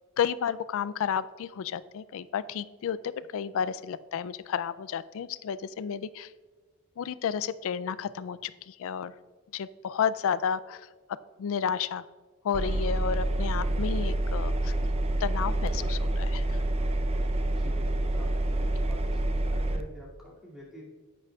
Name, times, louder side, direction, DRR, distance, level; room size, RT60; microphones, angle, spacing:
voice 1, 0.2-6.3 7.0-9.1 9.5-10.9 11.4-12.0 12.4-14.7 15.2-16.6, left 7 dB, 65° left, 17 dB, 0.3 m, -31 dB
Engine, 12.5-19.8, right 1 dB, 30° right, 0.5 m, -27 dB
voice 2, 17.5-20.9, equal, ahead, -6 dB, 2.4 m, -47 dB
10.0 x 9.1 x 2.3 m, 1.4 s
head